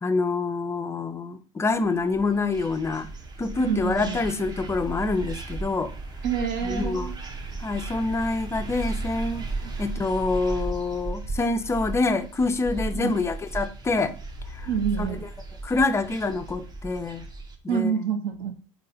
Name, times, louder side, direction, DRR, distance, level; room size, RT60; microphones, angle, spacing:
voice 1, 0.0-3.1 3.4-5.9 6.6-7.1 7.6-9.5 9.8-14.2 14.5-14.7 15.0-15.1 15.6-17.3 17.6-17.9, left 3 dB, 15° left, 0.4 m, -26 dB
sound 1, 1.8-17.5, right 3 dB, 25° right, 0.7 m, -35 dB
voice 2, 3.6-4.2 6.2-7.1 9.6-9.7 12.9-13.2 14.7-15.2 17.7-18.5, right 7 dB, 60° right, 0.8 m, -27 dB
3.7 x 2.2 x 4.0 m
hypercardioid pair, 80°, 17 cm